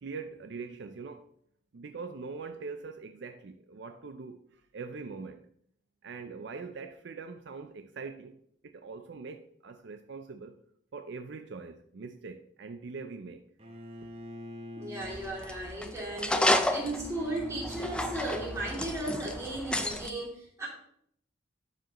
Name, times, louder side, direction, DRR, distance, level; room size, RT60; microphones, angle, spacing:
voice 1, 0.0-1.2 1.7-4.4 4.7-5.4 6.0-8.3 8.6-10.5 10.9-13.4, right 4 dB, 60° right, 0.4 m, -42 dB
Bowed string instrument, 13.6-19.7, left 1 dB, 30° right, 1.0 m, -46 dB
voice 2, 14.8-20.7, right 1 dB, 15° right, 2.6 m, -36 dB
sound 1, 15.0-20.1, left 1 dB, 5° left, 0.4 m, -31 dB
12.0 x 4.8 x 3.0 m
head